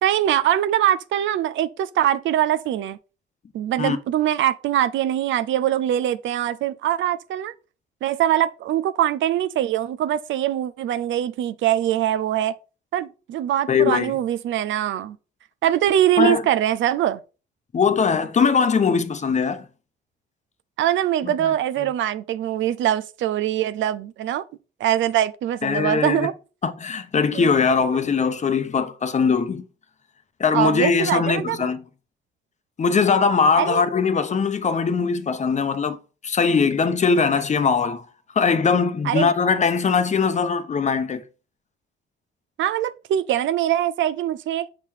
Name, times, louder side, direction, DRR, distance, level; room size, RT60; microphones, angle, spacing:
voice 1, 0.0-3.0 3.5-7.5 8.0-12.5 12.9-15.2 15.6-17.2 20.8-24.4 24.8-26.3 27.3-27.5 30.5-31.7 33.6-33.9 39.0-39.3 42.6-44.7, right 11 dB, 75° right, 0.5 m, -22 dB
voice 2, 13.7-14.1 16.2-16.4 17.7-19.6 21.2-21.5 25.6-26.3 26.6-29.6 30.4-31.8 32.8-36.0 36.2-38.0 38.3-41.2, left 5 dB, 35° left, 0.8 m, -21 dB
5.8 x 3.8 x 4.4 m
cardioid pair, 90°, 20 cm